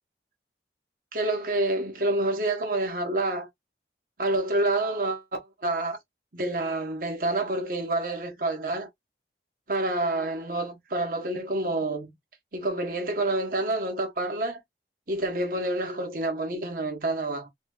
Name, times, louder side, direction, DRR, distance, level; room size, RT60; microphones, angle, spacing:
voice 1, 1.1-3.5 4.2-6.0 6.3-8.9 9.7-12.1 12.5-14.6 15.1-17.5, right 2 dB, 50° right, 1.2 m, -28 dB
4.0 x 2.1 x 3.7 m
head